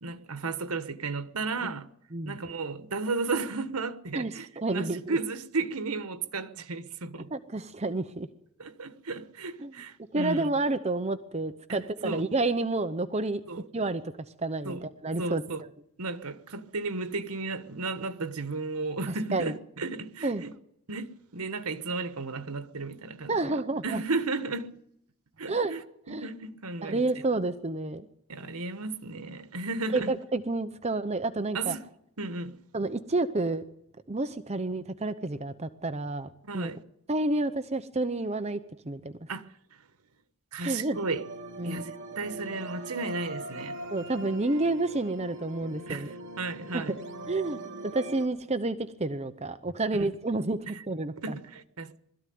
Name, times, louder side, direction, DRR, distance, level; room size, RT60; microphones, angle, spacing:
voice 1, 0.0-1.9 2.3-7.3 8.6-10.5 11.7-12.3 13.5-13.6 14.6-14.8 15.2-15.6 16.0-20.5 20.9-24.7 25.4-25.8 26.1-27.1 28.3-30.2 31.5-31.8 32.2-32.6 36.4-36.8 39.3-39.5 40.5-41.2 41.6-43.8 45.9-47.0 50.0-50.1 50.7-50.8 51.2-52.0, right 3 dB, 90° right, 1.3 m, -34 dB
voice 2, 4.1-5.2 7.3-8.3 9.6-9.7 10.1-13.4 13.7-14.0 14.4-15.4 19.3-19.5 20.2-20.4 23.3-24.0 25.5-25.7 26.1-26.3 26.8-28.1 29.9-31.8 32.7-33.6 34.1-36.7 37.1-38.6 38.9-39.1 40.6-41.0 41.6-41.8 43.9-46.1 47.3-47.6 47.9-51.1, right 2 dB, 30° right, 0.8 m, -29 dB
sound 1, 40.9-48.3, right 2 dB, 55° right, 2.7 m, -41 dB
20.5 x 13.5 x 9.4 m
head